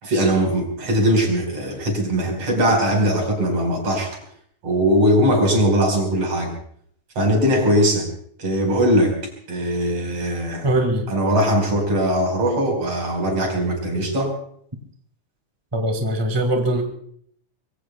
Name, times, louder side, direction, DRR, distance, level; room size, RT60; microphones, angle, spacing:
voice 1, 0.0-4.2 4.6-6.5 7.2-8.1 8.4-9.1 9.5-10.7 11.1-14.3, equal, 50° right, 2 dB, 5.9 m, -20 dB
voice 2, 10.6-11.1 15.7-16.8, right 1 dB, 10° right, 4 dB, 1.6 m, -21 dB
25.5 x 22.5 x 2.3 m, 0.63 s
omnidirectional pair, 3.5 m